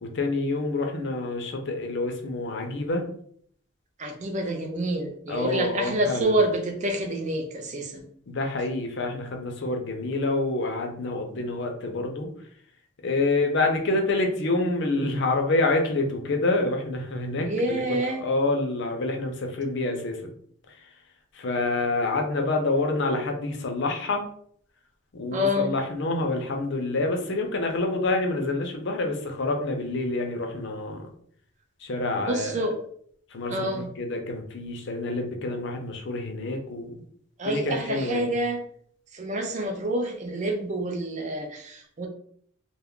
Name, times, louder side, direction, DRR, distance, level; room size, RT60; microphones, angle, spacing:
voice 1, 0.0-3.1 5.3-6.4 8.3-12.3 13.0-20.2 21.3-24.3 25.1-31.1 31.8-32.7 33.3-36.9 37.4-38.3, left 2 dB, 55° left, 3 dB, 0.5 m, -27 dB
voice 2, 4.0-8.0 17.5-18.2 25.3-25.7 32.2-32.8 33.5-33.9 37.4-38.6 39.1-42.1, right 1 dB, 35° right, 4 dB, 0.4 m, -27 dB
2.2 x 2.0 x 3.6 m, 0.62 s
head